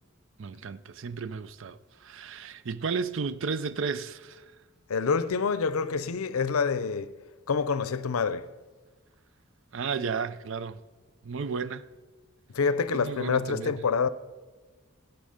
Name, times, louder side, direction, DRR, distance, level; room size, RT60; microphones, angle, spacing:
voice 1, 0.4-4.5 9.7-10.8 11.2-11.8 12.9-13.8, right 5 dB, 60° right, 0.5 m, -33 dB
voice 2, 4.9-7.1 7.5-8.5 12.5-14.1, left 5 dB, 85° left, 0.6 m, -27 dB
16.5 x 8.2 x 5.0 m
head